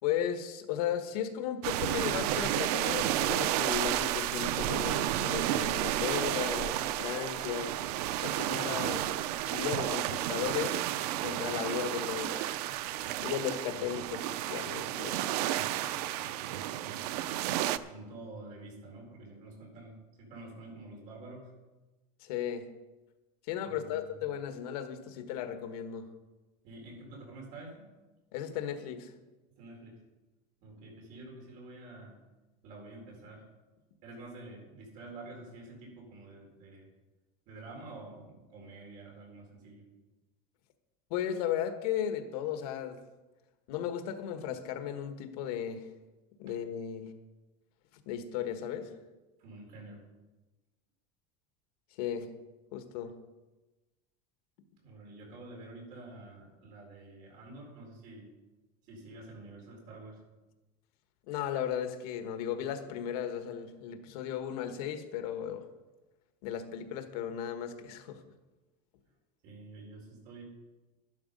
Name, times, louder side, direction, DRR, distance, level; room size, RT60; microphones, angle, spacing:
voice 1, 0.0-7.8 8.2-9.1 9.4-10.8 11.2-12.5 13.2-15.4 22.2-22.7 23.4-26.1 28.3-29.1 41.1-43.0 43.7-45.9 46.4-47.1 48.0-48.9 52.0-52.3 52.7-53.1 61.3-65.7 66.4-68.2, left 9 dB, 75° left, 8 dB, 1.4 m, -35 dB
sound 1, 1.6-17.8, right 13 dB, 85° right, 0.6 m, -32 dB
voice 2, 16.2-17.2 17.7-21.5 23.6-24.2 26.6-27.9 29.6-30.0 30.6-32.1 32.6-33.5 34.0-36.9 37.5-39.9 49.4-50.0 54.8-58.3 58.8-60.2 69.4-70.4, right 2 dB, 45° right, 0 dB, 4.3 m, -48 dB
12.0 x 11.5 x 5.3 m, 1.1 s
cardioid pair, 180°, 20 cm